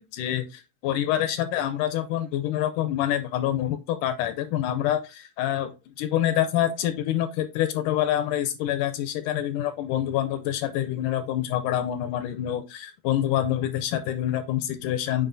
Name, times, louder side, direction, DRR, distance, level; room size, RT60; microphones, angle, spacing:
voice 1, 0.0-5.7 6.0-15.3, left 12 dB, 80° left, 10 dB, 2.0 m, -26 dB
7.7 x 4.7 x 2.6 m, 0.27 s
omnidirectional pair, 3.9 m